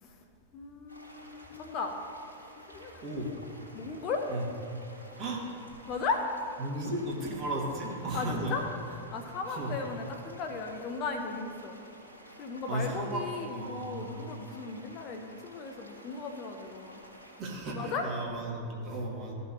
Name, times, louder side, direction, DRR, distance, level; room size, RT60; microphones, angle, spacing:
voice 1, 0.5-2.0 2.6-3.0 3.7-4.3 5.9-6.3 8.1-11.8 12.4-17.0 17.7-18.1, left 4 dB, 35° left, 4 dB, 0.7 m, -36 dB
sound 1, 0.9-17.4, equal, 75° right, 1.8 m, -52 dB
voice 2, 3.0-3.3 4.3-4.4 5.2-5.4 6.6-8.6 9.5-9.7 12.7-14.1 17.4-19.3, right 1 dB, 35° right, -2 dB, 1.9 m, -35 dB
15.0 x 5.5 x 2.8 m, 2.5 s
figure-of-eight pair, 90°, 0 cm